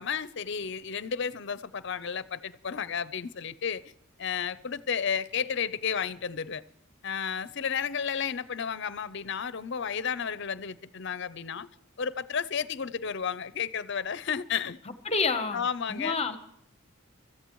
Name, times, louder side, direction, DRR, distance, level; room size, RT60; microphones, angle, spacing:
voice 1, 0.0-3.8 4.2-6.6 7.0-11.7 12.0-14.8 15.5-16.2, left 7 dB, 55° left, 0.6 m, -32 dB
voice 2, 15.1-16.4, left 4 dB, 30° left, 1.0 m, -29 dB
24.5 x 14.0 x 3.1 m
head